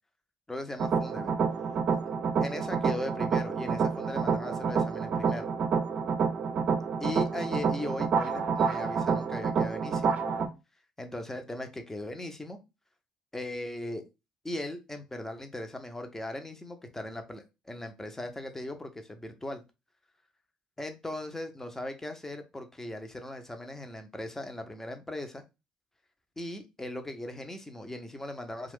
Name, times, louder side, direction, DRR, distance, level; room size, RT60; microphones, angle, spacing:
voice 1, 0.5-1.3 2.4-5.5 7.0-10.2 11.0-12.6 13.3-14.0 14.4-19.6 20.8-25.4 26.4-28.7, left 1 dB, 15° left, 6 dB, 0.8 m, -38 dB
sound 1, 0.8-10.5, right 5 dB, 55° right, 0.5 m, -28 dB
2.5 x 2.4 x 3.6 m, 0.26 s
hypercardioid pair, 55°, 3 cm